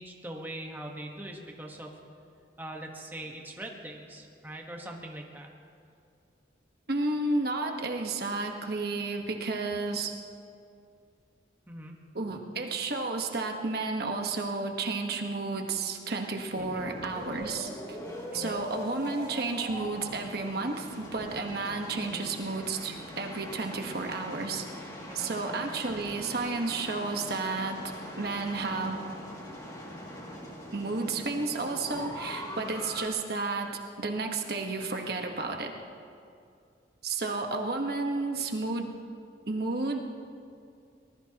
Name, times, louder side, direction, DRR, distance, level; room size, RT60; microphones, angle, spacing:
voice 1, 0.0-1.9 2.6-5.5 11.7-11.9 16.6-16.8 18.3-18.6 22.1-22.2 25.1-25.3, right 1 dB, 10° right, 0 dB, 1.3 m, -42 dB
voice 2, 6.9-10.1 12.1-18.0 18.3-24.6 25.1-27.8 28.2-29.0 30.7-35.7 37.0-39.0 39.5-40.0, right 3 dB, 60° right, 3 dB, 1.3 m, -32 dB
sound 1, 16.5-33.1, equal, 20° left, 2.3 m, -42 dB
24.0 x 19.5 x 2.9 m, 2.4 s
head